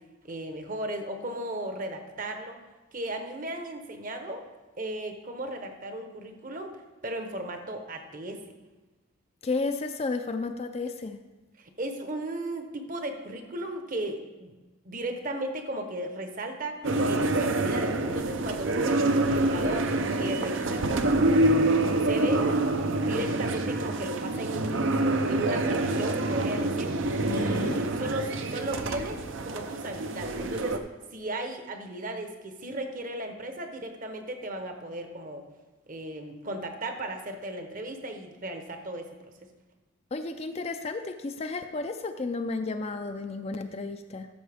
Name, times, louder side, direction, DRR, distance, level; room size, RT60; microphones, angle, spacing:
voice 1, 0.2-2.6 2.9-4.4 4.8-6.8 7.0-8.4 11.6-14.6 14.8-16.8 17.0-19.0 19.3-27.0 27.3-30.8 31.1-35.4 35.9-39.1, right 1 dB, 40° right, 6 dB, 0.9 m, -36 dB
voice 2, 9.4-11.2 27.3-27.8 40.1-44.3, left 3 dB, 30° left, 7 dB, 0.4 m, -32 dB
sound 1, 16.8-30.8, right 2 dB, 60° right, 0.6 m, -26 dB
13.0 x 6.4 x 3.4 m, 1.2 s
head